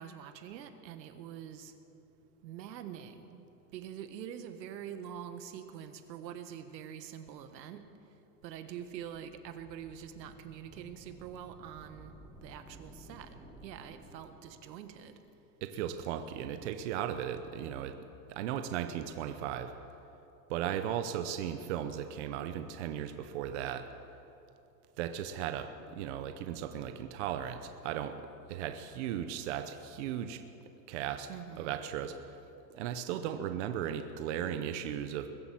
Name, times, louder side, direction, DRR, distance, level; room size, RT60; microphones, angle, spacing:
voice 1, 0.0-1.7 2.4-3.4 3.7-7.8 8.4-12.1 12.4-13.3 13.6-15.1 31.3-31.8, right 9 dB, 80° right, 9 dB, 1.5 m, -45 dB
sound 1, 8.8-15.1, right 1 dB, ahead, 1.0 m, -55 dB
voice 2, 15.6-17.9 18.3-19.7 20.5-23.8 25.0-28.2 28.5-30.4 30.9-31.3 31.6-32.4 32.7-35.3, right 10 dB, 45° right, 8 dB, 0.7 m, -36 dB
21.5 x 8.3 x 7.6 m, 2.8 s
supercardioid pair, 170°, 50 cm